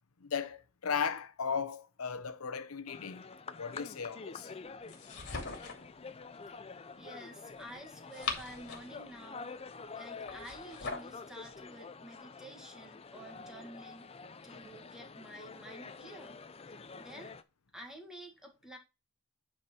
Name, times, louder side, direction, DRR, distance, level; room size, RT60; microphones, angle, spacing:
voice 1, 0.2-3.2 3.6-4.5, left 6 dB, 85° left, 0.8 m, -36 dB
sound 1, 2.9-17.4, left 4 dB, 30° left, 0.6 m, -48 dB
sound 2, 4.9-5.9 7.9-9.0 10.3-11.2, left 4 dB, 55° left, 2.7 m, -40 dB
voice 2, 6.7-14.1 14.4-16.4 16.7-17.4 17.7-18.8, right 1 dB, 5° right, 1.8 m, -51 dB
9.8 x 4.7 x 4.4 m
head